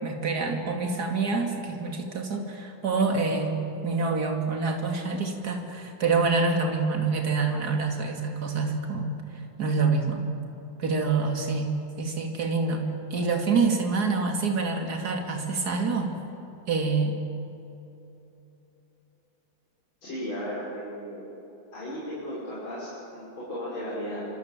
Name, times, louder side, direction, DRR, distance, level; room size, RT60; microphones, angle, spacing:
voice 1, 0.0-3.5 3.8-9.1 9.6-10.2 10.8-12.8 13.1-16.1 16.7-17.1, right 4 dB, 50° right, 3 dB, 3.1 m, -26 dB
voice 2, 20.0-21.3 21.7-24.3, equal, 90° left, -9 dB, 6.7 m, -35 dB
26.5 x 25.5 x 7.5 m, 3.0 s
omnidirectional pair, 2.1 m